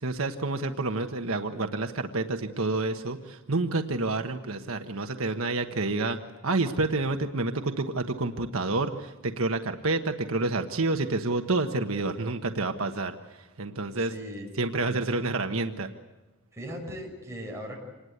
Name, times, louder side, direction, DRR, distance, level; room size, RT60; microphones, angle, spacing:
voice 1, 0.0-6.2 6.4-14.1 14.6-15.9, right 2 dB, 85° right, 6 dB, 1.3 m, -29 dB
voice 2, 14.0-14.5 16.5-17.8, equal, 15° right, 0 dB, 6.2 m, -38 dB
26.5 x 20.0 x 8.1 m, 1.1 s
head